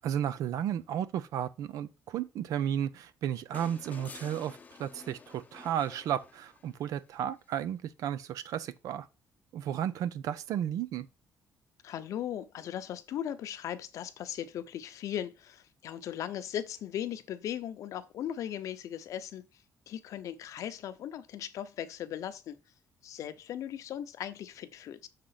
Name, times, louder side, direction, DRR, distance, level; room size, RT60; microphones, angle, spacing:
voice 1, 0.0-9.1 9.5-11.1, right 10 dB, 75° right, 0.7 m, -33 dB
sound 1, 3.5-6.9 8.4-8.5, left 5 dB, 25° left, 0.6 m, -50 dB
voice 2, 11.8-22.6 23.0-25.1, left 10 dB, 65° left, 0.7 m, -38 dB
6.7 x 3.7 x 5.8 m
cardioid pair, 155°, 6 cm